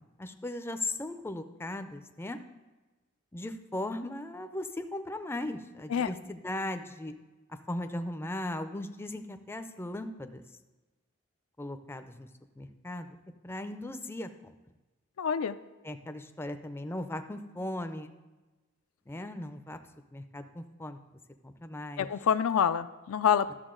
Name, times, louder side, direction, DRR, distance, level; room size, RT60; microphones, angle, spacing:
voice 1, 0.0-2.4 3.3-7.1 7.7-10.4 11.6-12.3 12.6-13.1 13.4-14.5 15.8-18.1 19.1-19.8 20.1-21.0 21.4-22.1, left 1 dB, 10° left, 8 dB, 0.4 m, -38 dB
voice 2, 15.2-15.6 22.0-23.5, left 8 dB, 75° left, 12 dB, 0.4 m, -26 dB
11.5 x 7.0 x 3.8 m, 1.2 s
head